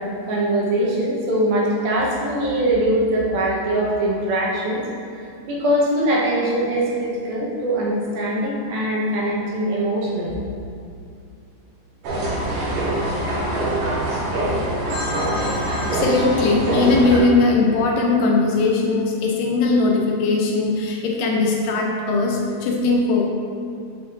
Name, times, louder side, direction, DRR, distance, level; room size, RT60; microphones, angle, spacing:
voice 1, 0.0-4.8 5.4-10.3, right 1 dB, 85° right, -4 dB, 2.8 m, -22 dB
sound 1, 12.0-17.2, right 1 dB, 70° right, 3.1 m, -23 dB
voice 2, 15.8-23.3, left 3 dB, 80° left, -1 dB, 2.0 m, -19 dB
7.7 x 6.6 x 2.6 m, 2.4 s
omnidirectional pair, 4.2 m